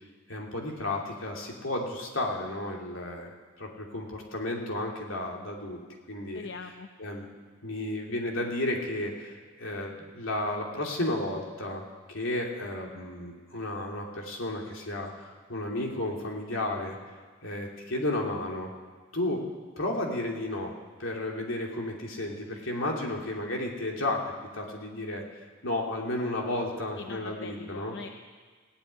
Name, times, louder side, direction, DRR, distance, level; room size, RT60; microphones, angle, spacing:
voice 1, 0.3-5.8 6.1-6.5 7.0-7.3 7.6-11.8 12.1-17.0 17.4-18.7 19.1-19.4 19.8-20.7 21.0-24.2 24.5-25.2 25.6-27.9, left 1 dB, 85° left, 0 dB, 2.9 m, -33 dB
voice 2, 6.3-6.9 27.0-28.1, left 4 dB, 65° left, 7 dB, 0.6 m, -41 dB
17.0 x 8.5 x 9.8 m, 1.5 s
head